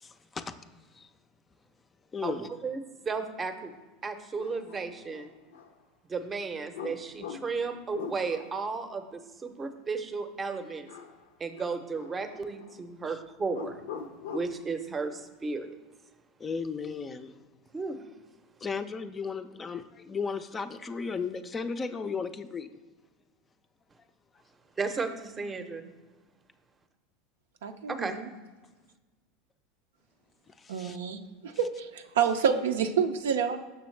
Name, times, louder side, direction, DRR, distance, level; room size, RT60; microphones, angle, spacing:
voice 1, 0.0-0.4 0.9-1.1 2.1-2.5 13.0-13.2 16.4-17.3 18.6-22.7 30.6-31.0, left 5 dB, 25° left, 10 dB, 0.4 m, -35 dB
voice 2, 2.2-3.7 4.0-5.3 6.1-10.9 11.4-13.8 14.3-15.8 17.7-18.0 24.8-25.9 27.9-28.2, right 4 dB, 25° right, 8 dB, 0.6 m, -34 dB
sound 1, 3.7-3.8 4.4-5.7 6.7-8.7 10.9-11.3 11.5-12.8 13.5-14.6, left 6 dB, 85° left, 0.5 m, -43 dB
voice 3, 27.6-28.3 30.7-33.6, right 7 dB, 85° right, 7 dB, 0.4 m, -28 dB
6.3 x 5.9 x 3.2 m, 1.3 s
hypercardioid pair, 100°, 0 cm